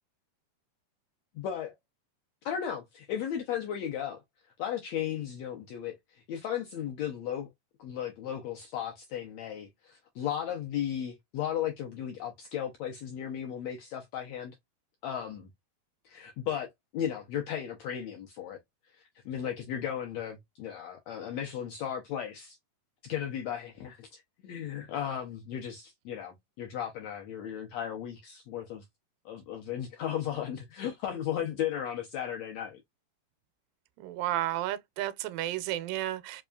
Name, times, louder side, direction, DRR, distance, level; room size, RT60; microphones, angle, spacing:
voice 1, 1.3-1.7 2.4-4.2 4.6-7.5 7.8-14.5 15.0-15.5 16.0-16.7 16.9-18.6 18.9-22.6 23.0-28.8 29.2-32.8, left 9 dB, 85° left, 1.5 m, -35 dB
voice 2, 34.0-36.4, right 14 dB, 90° right, 2.3 m, -32 dB
5.2 x 2.3 x 2.3 m
omnidirectional pair, 3.8 m